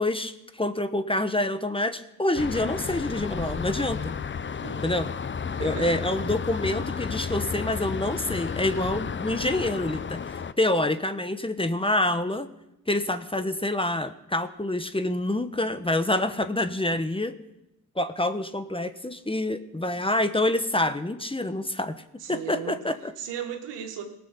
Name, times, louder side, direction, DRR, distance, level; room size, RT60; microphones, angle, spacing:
voice 1, 0.0-4.1 4.8-5.1 5.6-10.2 10.6-12.5 12.9-17.3 18.0-22.0 22.3-23.1, left 1 dB, 15° left, 10 dB, 1.1 m, -27 dB
sound 1, 2.4-10.5, left 6 dB, 30° left, 0.7 m, -32 dB
voice 2, 4.6-5.0 5.5-5.9 22.2-22.8 23.2-24.0, right 9 dB, 90° right, 4 dB, 1.7 m, -36 dB
18.0 x 6.2 x 7.3 m, 0.87 s
supercardioid pair, 50°, 41 cm